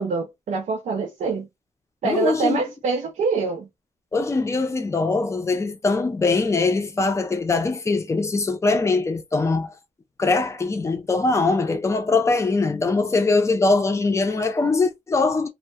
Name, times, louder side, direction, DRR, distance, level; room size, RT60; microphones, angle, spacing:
voice 1, 0.0-1.5 2.0-3.7, right 4 dB, 85° right, 0.5 m, -25 dB
voice 2, 2.0-2.6 4.1-9.7 10.2-15.5, left 3 dB, 25° left, 0.4 m, -22 dB
2.2 x 2.1 x 2.7 m
wide cardioid pair, 170°, 12 cm